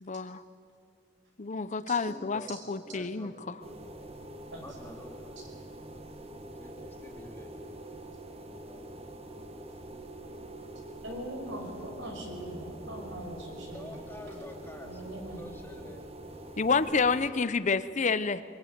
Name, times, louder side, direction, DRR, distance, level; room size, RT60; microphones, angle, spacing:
voice 1, 0.0-0.4 1.4-2.4 2.7-3.6 16.6-18.4, left 4 dB, 40° left, 13 dB, 0.7 m, -29 dB
voice 2, 2.0-3.8 4.6-5.8 6.5-7.5 8.4-9.0 13.7-15.0 15.3-16.0, equal, 10° left, 1 dB, 2.8 m, -48 dB
sound 1, 3.6-17.3, right 1 dB, 35° right, 1.5 m, -45 dB
voice 3, 11.0-14.0 14.8-15.4, right 1 dB, 85° right, 2 dB, 5.8 m, -41 dB
22.0 x 22.0 x 9.4 m, 2.6 s
head